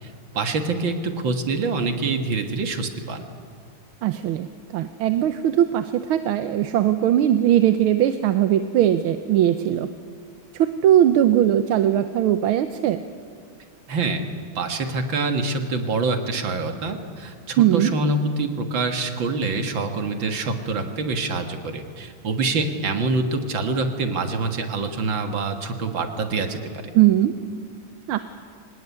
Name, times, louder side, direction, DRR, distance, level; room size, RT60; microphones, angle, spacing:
voice 1, 0.0-3.2 13.9-14.2 14.6-26.8, right 3 dB, 70° right, 6 dB, 2.3 m, -25 dB
voice 2, 4.0-4.5 4.7-9.9 10.5-13.0 17.6-17.9 26.9-27.3 28.1-28.2, right 11 dB, 90° right, 10 dB, 1.7 m, -19 dB
25.0 x 18.5 x 9.5 m, 2.2 s
omnidirectional pair, 2.2 m